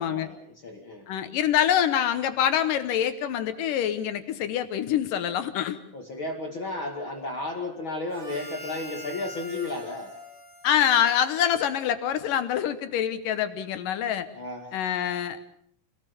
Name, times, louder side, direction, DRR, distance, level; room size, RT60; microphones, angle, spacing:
voice 1, 0.0-1.1 5.9-10.1 14.3-14.7, left 2 dB, 40° left, 2 dB, 2.3 m, -33 dB
voice 2, 1.1-5.8 10.6-14.3 14.7-15.4, left 10 dB, 70° left, 10 dB, 2.3 m, -25 dB
Harmonica, 8.1-11.9, left 2 dB, 30° right, 4.7 m, -43 dB
27.0 x 18.5 x 6.9 m, 0.67 s
omnidirectional pair, 4.6 m